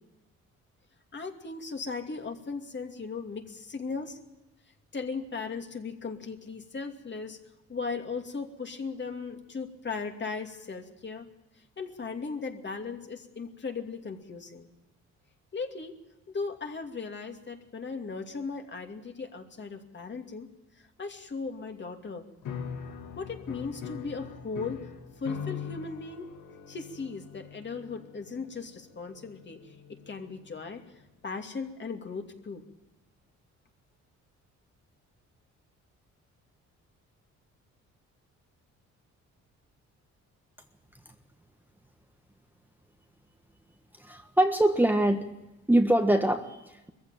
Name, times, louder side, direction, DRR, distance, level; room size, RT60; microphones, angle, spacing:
voice 1, 1.1-4.2 4.9-7.4 7.7-11.3 11.8-14.7 15.5-16.0 16.3-20.5 21.0-22.2 23.2-24.9 25.2-26.3 26.7-30.8 31.2-32.6, left 4 dB, 35° left, 4 dB, 2.7 m, -37 dB
sound 1, 22.4-30.8, left 7 dB, 80° left, 2.1 m, -42 dB
voice 2, 44.0-45.3 45.7-46.9, right 1 dB, 5° right, 5 dB, 1.4 m, -24 dB
21.5 x 15.0 x 9.1 m, 0.99 s
cardioid pair, 90°, 30 cm